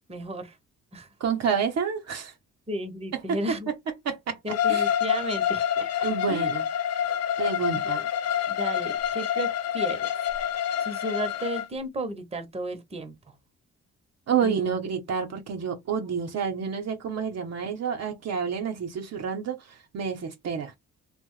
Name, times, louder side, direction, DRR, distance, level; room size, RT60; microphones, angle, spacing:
voice 1, 0.1-0.6 0.9-1.1 2.7-3.7 4.4-6.5 7.7-8.1 8.5-10.0 10.8-13.1 14.4-14.8, right 1 dB, 20° right, 0.8 m, -34 dB
voice 2, 1.2-2.3 3.1-3.6 4.0-4.4 4.7-4.9 6.0-6.7 7.4-8.0 14.3-19.6 19.9-20.7, right 6 dB, 60° right, 0.8 m, -29 dB
Bowed string instrument, 4.5-11.7, left 9 dB, 55° left, 0.5 m, -27 dB
2.9 x 2.1 x 3.0 m
cardioid pair, 90°, 30 cm